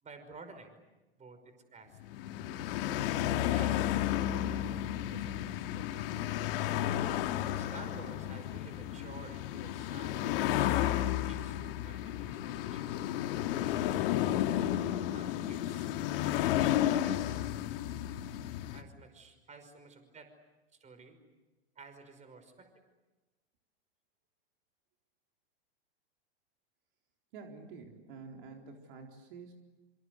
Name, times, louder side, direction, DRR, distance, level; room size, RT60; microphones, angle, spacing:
voice 1, 0.0-0.8 1.2-2.0 3.5-4.2 4.5-4.8 5.1-5.9 7.6-10.5 10.9-13.2 13.7-14.2 15.0-17.4 18.7-20.3 20.8-21.2 21.8-22.7, right 4 dB, 25° right, 8 dB, 5.4 m, -53 dB
sound 1, 2.0-18.8, left 12 dB, 65° left, 2.1 m, -32 dB
voice 2, 27.3-29.5, right 4 dB, 60° right, 2 dB, 4.1 m, -48 dB
26.5 x 26.0 x 8.1 m, 1.1 s
hypercardioid pair, 105°, 30 cm